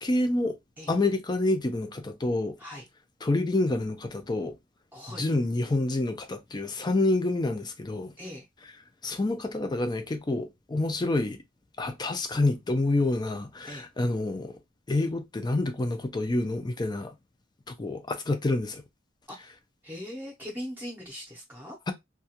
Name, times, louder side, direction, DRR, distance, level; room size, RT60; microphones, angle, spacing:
voice 1, 0.0-0.6 0.9-2.6 3.2-4.5 5.2-8.1 9.0-11.4 11.8-14.6 14.9-17.1 17.7-18.8 21.9-22.0, left 2 dB, 20° left, 0.4 m, -28 dB
voice 2, 4.9-5.2 8.2-8.4 13.7-13.9 19.3-19.4 19.8-21.8, equal, 10° right, 0.7 m, -40 dB
2.3 x 2.3 x 2.8 m
head